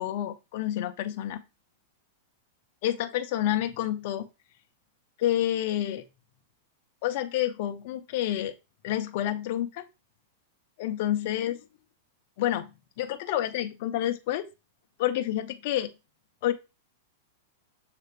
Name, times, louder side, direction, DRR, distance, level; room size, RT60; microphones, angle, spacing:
voice 1, 0.0-1.4 2.8-4.3 5.2-6.0 7.0-8.5 8.8-9.9 10.8-11.6 12.4-12.7 13.0-14.5 15.0-15.9 16.4-16.5, left 12 dB, 40° left, 7 dB, 0.4 m, -28 dB
6.4 x 2.4 x 3.2 m, 0.26 s
supercardioid pair, 175°, 0 cm